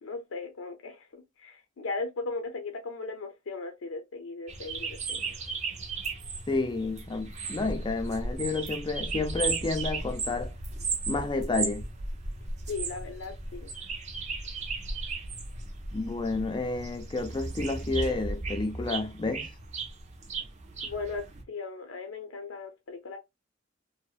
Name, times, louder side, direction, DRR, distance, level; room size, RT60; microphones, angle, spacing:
voice 1, 0.0-1.1 1.4-5.3 12.7-13.7 20.8-23.2, left 3 dB, 80° left, 0.5 m, -37 dB
sound 1, 4.5-21.4, right 3 dB, 35° right, 0.5 m, -35 dB
voice 2, 6.5-10.5 11.1-11.9 15.9-19.5, left 3 dB, 25° left, 0.4 m, -30 dB
2.6 x 2.0 x 2.3 m
head